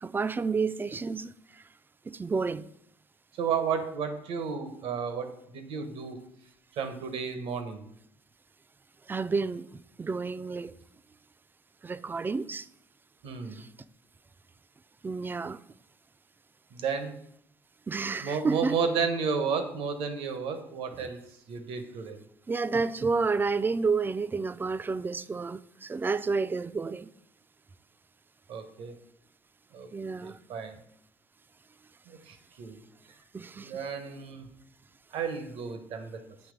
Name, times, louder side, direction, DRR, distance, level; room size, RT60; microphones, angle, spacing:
voice 1, 0.0-1.3 2.1-2.7 9.1-10.7 11.8-12.7 13.5-13.7 15.0-15.6 17.9-18.8 22.5-27.1 29.9-30.4 33.3-33.8, right 4 dB, 20° right, 0.3 m, -30 dB
voice 2, 3.4-6.2 6.7-7.8 13.2-13.6 16.7-17.1 18.2-21.2 21.5-22.2 28.5-28.9 29.7-29.9 30.2-30.8 32.1-32.8 33.6-34.5 35.1-36.2, right 6 dB, 75° right, 0.9 m, -32 dB
7.9 x 3.0 x 5.0 m
supercardioid pair, 65°, 10 cm